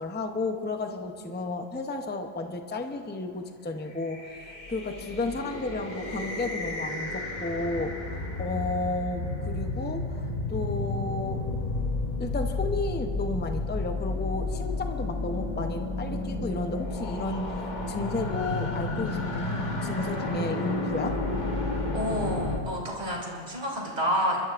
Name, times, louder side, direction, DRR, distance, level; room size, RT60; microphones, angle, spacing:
voice 1, 0.0-11.5 12.2-19.4 19.8-21.2, left 2 dB, 15° left, 6 dB, 0.5 m, -33 dB
sound 1, 4.0-22.6, left 2 dB, 45° left, 1.3 m, -31 dB
voice 2, 21.9-24.4, equal, 45° right, -4 dB, 3.1 m, -29 dB
29.0 x 12.5 x 2.5 m, 2.3 s
omnidirectional pair, 1.1 m